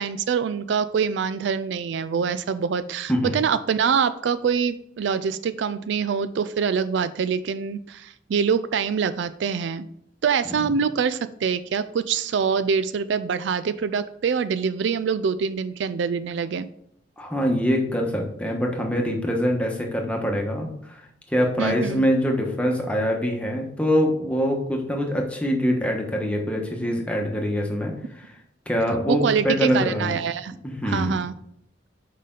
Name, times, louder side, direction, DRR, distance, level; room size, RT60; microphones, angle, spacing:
voice 1, 0.0-9.9 10.2-16.7 21.6-22.0 29.1-30.5 30.8-31.3, right 6 dB, 70° right, 13 dB, 0.3 m, -25 dB
voice 2, 17.2-21.0 21.3-28.3 28.7-30.2 30.6-31.2, equal, 5° left, 1 dB, 1.1 m, -24 dB
6.6 x 5.1 x 3.8 m, 0.70 s
head